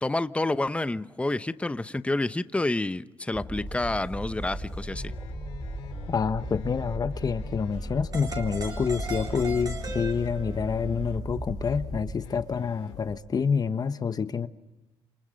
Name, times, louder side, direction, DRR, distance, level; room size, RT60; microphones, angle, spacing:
voice 1, 0.0-5.1, left 2 dB, 10° left, 13 dB, 0.9 m, -29 dB
sound 1, 3.3-12.2, right 1 dB, 10° right, 4.0 m, -37 dB
sound 2, 3.7-13.2, left 7 dB, 90° left, 3.1 m, -44 dB
voice 2, 6.1-14.5, left 6 dB, 40° left, 11 dB, 1.3 m, -28 dB
sound 3, 8.1-10.7, right 4 dB, 40° right, 3.8 m, -38 dB
29.5 x 26.5 x 6.5 m, 0.97 s
cardioid pair, 85°, 10 cm